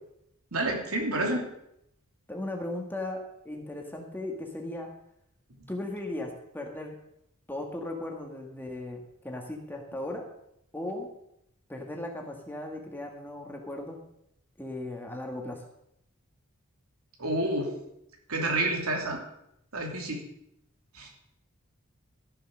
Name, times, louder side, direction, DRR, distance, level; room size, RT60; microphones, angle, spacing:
voice 1, 0.5-1.4 17.2-17.7 18.3-19.2 19.7-20.2 20.9-21.1, right 2 dB, 80° right, 1 dB, 2.8 m, -29 dB
voice 2, 2.3-4.9 5.7-6.9 7.5-9.0 9.2-10.3 10.7-11.1 11.7-14.0 14.6-15.6, left 1 dB, 10° left, 2 dB, 1.7 m, -37 dB
13.5 x 7.1 x 6.2 m, 0.77 s
head